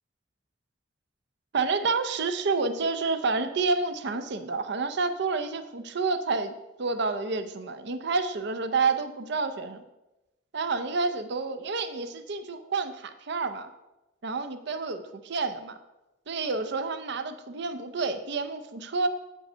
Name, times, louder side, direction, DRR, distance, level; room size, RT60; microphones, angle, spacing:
voice 1, 1.5-6.5 6.8-9.8 10.5-13.7 14.2-15.0 15.3-15.8 16.3-19.1, right 4 dB, 65° right, 9 dB, 0.6 m, -29 dB
8.5 x 5.4 x 5.5 m, 0.99 s
head